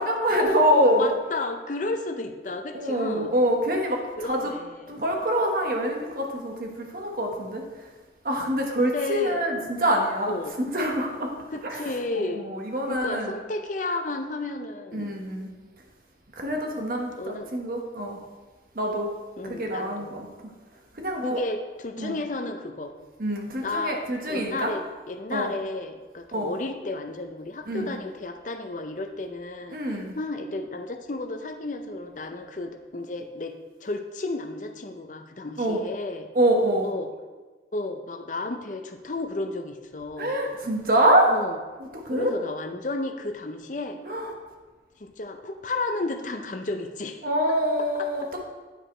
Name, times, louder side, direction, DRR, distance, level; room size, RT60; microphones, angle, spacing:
voice 1, 0.0-1.1 2.7-4.5 4.9-7.9 8.2-10.3 10.6-11.3 11.6-13.3 14.9-15.5 16.4-18.2 18.7-19.1 19.4-20.3 20.9-21.4 22.0-22.2 23.2-24.7 25.3-25.5 26.3-26.6 27.7-27.9 29.7-30.1 35.6-35.8 36.3-36.9 40.2-41.3 41.8-42.3 44.0-44.3 47.2-48.4, right 1 dB, 50° right, 1 dB, 1.1 m, -25 dB
voice 2, 0.7-3.3 4.2-5.0 8.8-9.4 10.3-10.5 11.5-12.5 12.9-15.1 17.2-17.5 19.4-20.1 21.2-22.9 23.6-24.0 24.2-29.8 30.1-33.6 33.8-36.3 36.8-37.1 37.7-40.4 41.3-41.6 42.1-44.0 45.0-47.2 47.8-48.1, left 2 dB, 45° left, 6 dB, 0.6 m, -32 dB
9.0 x 5.0 x 4.4 m, 1.3 s
head